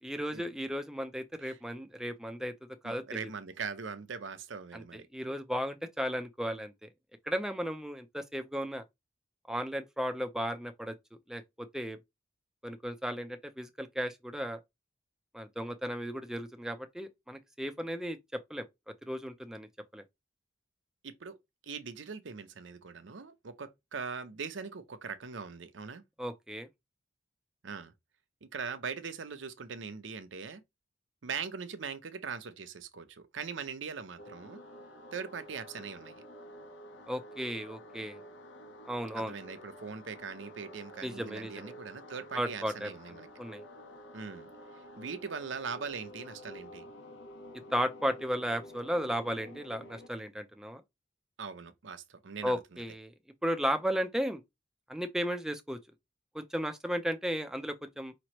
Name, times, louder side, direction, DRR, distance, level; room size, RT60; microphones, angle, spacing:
voice 1, 0.0-2.5 2.8-3.2 4.7-6.9 7.3-8.8 9.5-11.0 11.3-12.0 12.6-14.6 15.3-19.7 19.9-20.0 26.2-26.7 37.1-38.2 38.8-39.3 41.0-41.7 42.3-42.9 43.4-43.6 47.7-50.8 52.4-53.1 53.4-54.4 54.9-55.8 56.3-58.1, equal, 5° right, 0.4 m, -35 dB
voice 2, 2.8-5.1 21.0-21.4 21.6-26.0 27.6-27.9 28.4-30.6 31.2-34.6 35.1-36.2 39.1-43.3 44.1-44.5 44.7-46.9 51.4-52.6, right 5 dB, 90° right, 0.6 m, -41 dB
sound 1, 34.2-50.1, equal, 85° left, 1.0 m, -50 dB
5.0 x 3.0 x 2.9 m
head